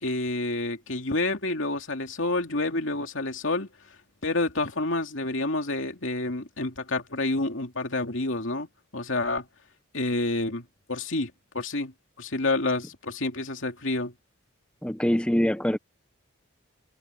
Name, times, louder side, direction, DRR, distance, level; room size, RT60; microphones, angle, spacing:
voice 1, 0.0-3.7 4.2-8.7 8.9-9.4 9.9-11.9 12.2-14.1, left 2 dB, 70° left, 2.6 m, -28 dB
voice 2, 14.8-15.8, equal, 5° left, 0.7 m, -24 dB
head